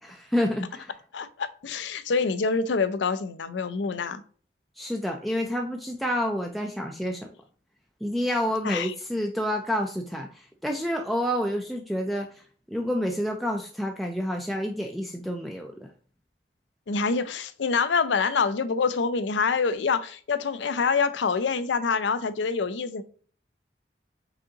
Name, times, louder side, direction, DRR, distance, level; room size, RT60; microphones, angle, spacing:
voice 1, 0.0-0.9 4.8-7.3 8.0-15.9, equal, ahead, 0.3 m, -29 dB
voice 2, 1.1-4.2 8.6-8.9 16.9-23.0, left 5 dB, 85° left, 0.5 m, -26 dB
5.0 x 3.7 x 2.8 m
head